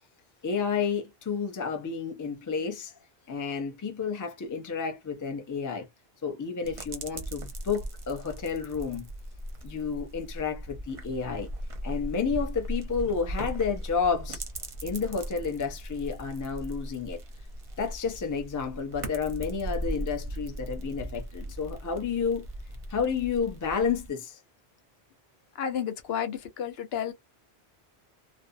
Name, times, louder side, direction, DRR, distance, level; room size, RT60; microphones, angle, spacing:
voice 1, 0.4-2.9 3.3-5.9 6.2-9.1 9.6-11.5 11.8-14.4 14.8-17.2 17.8-22.5 22.9-24.4, left 5 dB, 25° left, 0.4 m, -31 dB
sound 1, 6.6-24.1, right 1 dB, 40° right, 0.6 m, -38 dB
voice 2, 25.6-27.1, left 8 dB, 75° left, 0.8 m, -31 dB
2.5 x 2.0 x 2.5 m
omnidirectional pair, 1.1 m